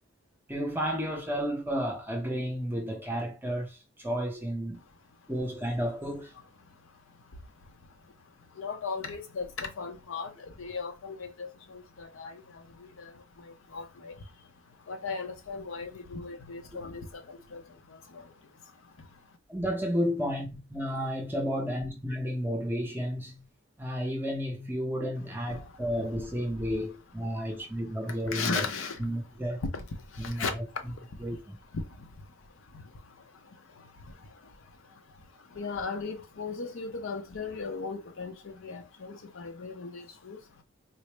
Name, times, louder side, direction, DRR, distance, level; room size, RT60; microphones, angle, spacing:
voice 1, 0.5-4.8 5.3-6.3 19.5-23.5 23.8-28.7 29.0-29.6 30.2-30.6 31.2-31.6, equal, 10° right, 0.6 m, -32 dB
voice 2, 8.6-10.3 10.6-12.4 13.0-13.1 13.7-14.1 14.9-17.6 18.1-18.2 25.5-25.6 28.1-29.0 29.7-29.8 30.2-30.5 31.7-31.8 35.5-40.4, left 4 dB, 70° left, 0.6 m, -36 dB
3.9 x 2.0 x 3.2 m
head